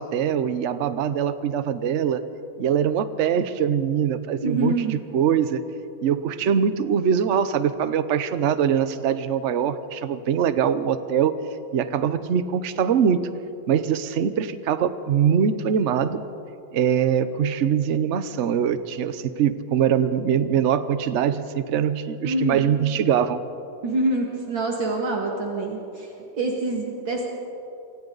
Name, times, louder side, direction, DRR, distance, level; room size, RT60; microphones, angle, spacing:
voice 1, 0.0-2.3 2.6-5.6 6.0-11.4 11.7-13.3 13.7-16.2 16.7-23.4, right 8 dB, 55° right, 12 dB, 0.8 m, -23 dB
voice 2, 4.4-5.0 22.2-22.8 23.8-27.3, right 2 dB, 70° right, -1 dB, 2.9 m, -26 dB
27.5 x 25.5 x 4.0 m, 2.7 s
omnidirectional pair, 2.2 m